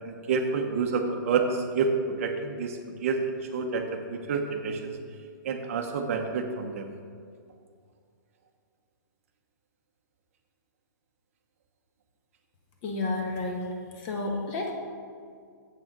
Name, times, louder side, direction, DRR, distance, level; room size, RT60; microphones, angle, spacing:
voice 1, 0.0-1.9 2.2-3.2 3.5-5.0 5.4-6.9, right 5 dB, 45° right, 5 dB, 0.8 m, -29 dB
voice 2, 12.8-13.7 13.9-14.7, left 2 dB, 30° left, 1 dB, 1.2 m, -31 dB
7.7 x 6.3 x 5.9 m, 2.2 s
hypercardioid pair, 165°, 11 cm